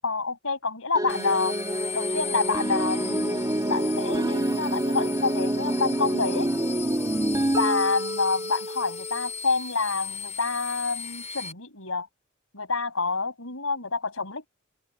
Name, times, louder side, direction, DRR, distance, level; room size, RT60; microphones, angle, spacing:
voice 1, 0.0-1.6 1.9-6.5 7.6-12.1 12.5-14.5, left 4 dB, 75° left, 7.6 m, -28 dB
sound 1, 0.9-9.4, right 1 dB, 20° right, 1.2 m, -27 dB
sound 2, 1.1-11.5, left 6 dB, 35° left, 4.1 m, -38 dB
open air
head